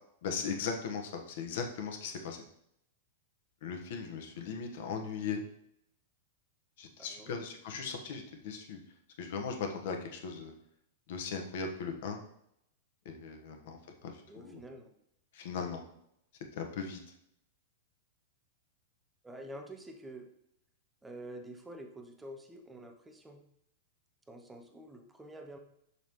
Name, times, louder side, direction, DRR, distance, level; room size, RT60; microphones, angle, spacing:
voice 1, 0.2-2.4 3.6-5.4 6.8-8.8 9.2-10.5 11.1-12.2 13.0-13.8 14.0-14.6 15.3-15.8 16.6-17.0, left 5 dB, 60° left, 4 dB, 1.2 m, -38 dB
voice 2, 7.0-7.4 13.6-13.8 14.3-14.9 19.2-20.3 21.0-23.4 24.3-25.6, right 1 dB, 5° right, 4 dB, 0.8 m, -48 dB
6.2 x 5.4 x 3.1 m, 0.75 s
supercardioid pair, 160°, 0 cm